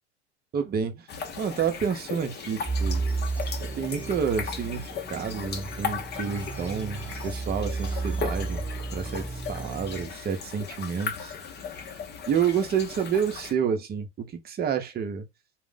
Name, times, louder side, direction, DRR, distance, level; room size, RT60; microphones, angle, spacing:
voice 1, 0.5-1.1 1.4-3.0 3.7-8.7 8.9-11.3 12.3-15.3, right 7 dB, 30° right, 0.7 m, -29 dB
sound 1, 1.1-13.5, left 6 dB, 30° left, 0.7 m, -37 dB
sound 2, 2.6-10.0, right 3 dB, 5° right, 1.0 m, -33 dB
2.4 x 2.1 x 3.8 m
hypercardioid pair, 95°, 34 cm